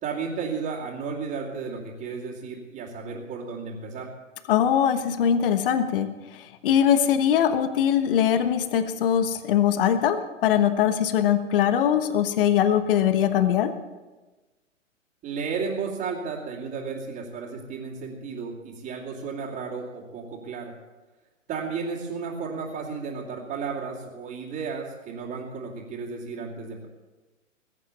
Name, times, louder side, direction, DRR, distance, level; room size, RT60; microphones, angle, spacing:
voice 1, 0.0-4.1 15.2-20.7 21.5-26.9, right 5 dB, 25° right, -5 dB, 2.9 m, -33 dB
voice 2, 4.5-13.8, left 9 dB, 45° left, 10 dB, 1.3 m, -22 dB
21.0 x 9.0 x 6.9 m, 1.2 s
figure-of-eight pair, 120°, 38 cm